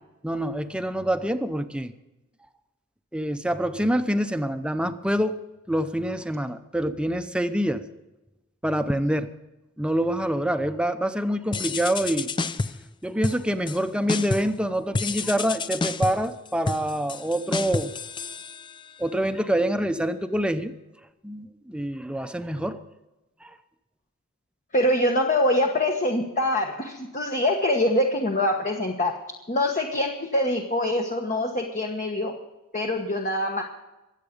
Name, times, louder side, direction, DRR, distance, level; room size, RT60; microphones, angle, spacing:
voice 1, 0.2-1.9 3.1-5.4 5.7-7.9 8.6-9.3 9.8-12.3 13.0-17.9 19.0-20.7 21.2-22.8 23.4-23.5, right 1 dB, 5° right, 9 dB, 0.8 m, -26 dB
sound 1, 11.5-12.9 13.2-13.8 14.1-14.6 14.9-19.0, left 3 dB, 25° left, 0.5 m, -30 dB
voice 2, 24.7-29.1 29.5-32.3 32.7-33.6, left 1 dB, 40° left, 1 dB, 1.3 m, -24 dB
23.5 x 8.3 x 5.2 m, 1.0 s
head